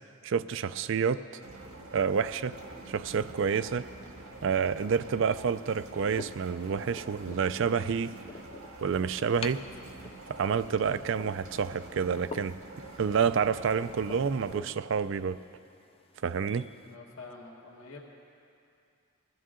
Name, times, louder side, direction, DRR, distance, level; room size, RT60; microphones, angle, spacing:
voice 1, 0.2-1.4 1.9-2.6 2.9-3.9 4.4-8.1 8.8-9.6 10.3-12.6 13.0-15.4 16.2-16.7, right 6 dB, 60° right, 14 dB, 0.4 m, -28 dB
sound 1, 1.4-14.6, right 2 dB, 85° right, 1.7 m, -47 dB
sound 2, 5.1-16.9, left 4 dB, 25° left, 0.3 m, -48 dB
voice 2, 16.5-18.0, left 3 dB, 75° left, -2 dB, 1.8 m, -48 dB
21.5 x 14.0 x 3.8 m, 2.5 s
head